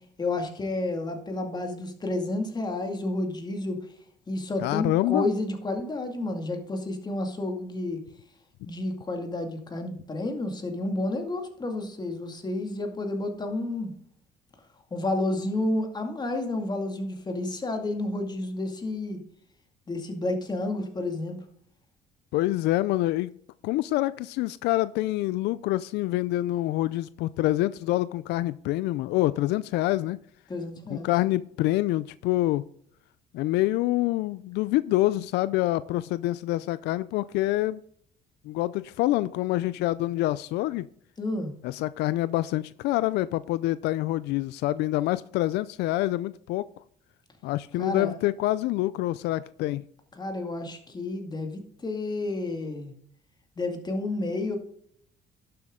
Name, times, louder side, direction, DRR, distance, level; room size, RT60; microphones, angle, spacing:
voice 1, 0.2-3.8 4.3-8.0 8.7-13.9 14.9-19.2 19.9-21.4 30.5-31.1 41.2-41.5 47.8-48.2 50.2-52.9 53.6-54.6, left 2 dB, 25° left, 5 dB, 2.2 m, -30 dB
voice 2, 4.6-5.3 22.3-23.3 23.6-30.2 30.9-32.6 33.3-37.8 38.5-40.9 41.6-46.7 47.4-49.8, left 16 dB, 85° left, 17 dB, 0.4 m, -26 dB
11.5 x 7.8 x 3.7 m, 0.64 s
cardioid pair, 110°, 17 cm